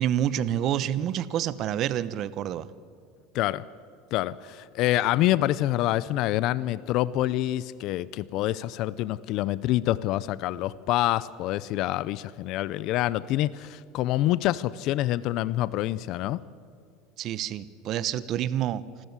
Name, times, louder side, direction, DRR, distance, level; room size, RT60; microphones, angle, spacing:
voice 1, 0.0-2.7 17.2-19.1, right 11 dB, 45° right, 17 dB, 1.0 m, -28 dB
voice 2, 3.3-3.7 4.1-16.4, left 15 dB, 55° left, 19 dB, 0.6 m, -26 dB
26.5 x 14.0 x 9.7 m, 2.3 s
supercardioid pair, 135°, 0 cm